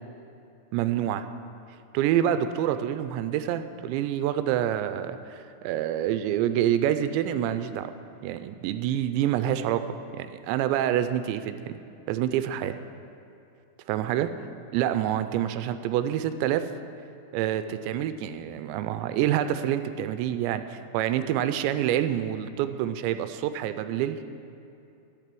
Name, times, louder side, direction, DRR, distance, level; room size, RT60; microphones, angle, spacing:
voice 1, 0.7-1.3 1.9-7.9 8.2-11.8 12.1-12.8 13.9-14.3 14.7-16.7 17.3-24.2, right 11 dB, 85° right, 10 dB, 2.8 m, -27 dB
12.5 x 8.7 x 7.6 m, 2.7 s
omnidirectional pair, 5.2 m